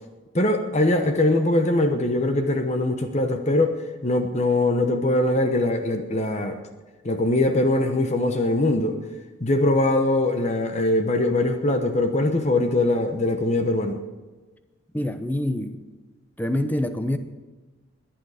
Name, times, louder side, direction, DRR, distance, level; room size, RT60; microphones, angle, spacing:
voice 1, 0.3-3.8 4.0-6.6 7.0-9.0 9.4-14.0, left 2 dB, 35° left, 6 dB, 1.0 m, -22 dB
voice 2, 14.9-15.8 16.4-17.2, left 1 dB, 10° left, 8 dB, 0.8 m, -26 dB
21.5 x 9.1 x 5.0 m, 1.3 s
head